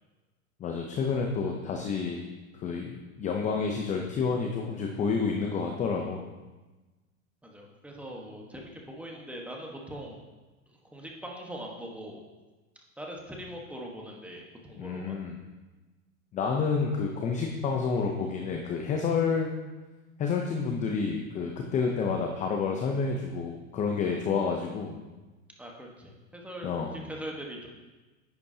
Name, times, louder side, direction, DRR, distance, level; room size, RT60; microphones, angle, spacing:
voice 1, 0.6-2.3 2.5-6.2 14.8-15.4 16.3-19.5 20.2-25.0 26.6-27.0, left 5 dB, 20° left, 2 dB, 0.6 m, -29 dB
voice 2, 7.4-10.2 10.9-12.2 13.0-15.2 25.6-27.7, equal, 5° right, -1 dB, 1.2 m, -41 dB
10.5 x 8.3 x 2.8 m, 1.2 s
hypercardioid pair, 130°, 42 cm